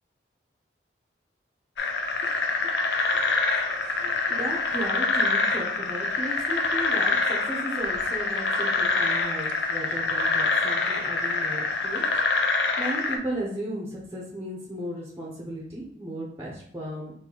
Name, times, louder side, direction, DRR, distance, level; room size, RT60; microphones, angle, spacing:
sound 1, 1.8-13.2, left 3 dB, 75° left, 0.5 m, -25 dB
voice 1, 4.0-12.0 12.8-17.1, right 1 dB, 15° right, -4 dB, 0.7 m, -35 dB
3.8 x 2.7 x 2.9 m, 0.69 s
head